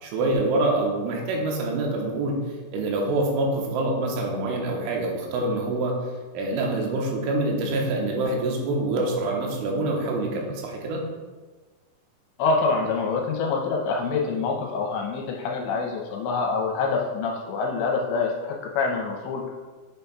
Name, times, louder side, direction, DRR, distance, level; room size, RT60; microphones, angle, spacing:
voice 1, 0.0-2.4 2.7-11.1, right 2 dB, 85° right, 0 dB, 3.4 m, -26 dB
voice 2, 12.4-19.6, left 4 dB, 80° left, 0 dB, 2.7 m, -26 dB
8.0 x 7.0 x 2.3 m, 1.3 s
omnidirectional pair, 5.5 m